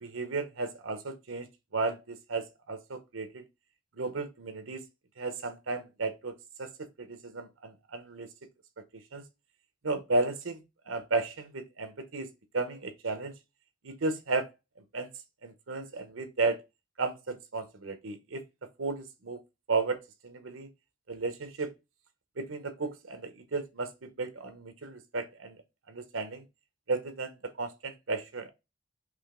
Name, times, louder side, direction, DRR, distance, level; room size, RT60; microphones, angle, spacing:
voice 1, 0.0-3.4 4.0-4.8 5.2-8.3 8.9-9.2 9.8-13.3 13.8-14.5 14.9-15.1 15.4-16.6 17.0-19.4 19.7-20.7 21.1-21.7 22.4-25.6 25.9-26.4 26.9-28.5, right 3 dB, 90° right, 0.9 m, -34 dB
5.0 x 2.9 x 3.7 m
head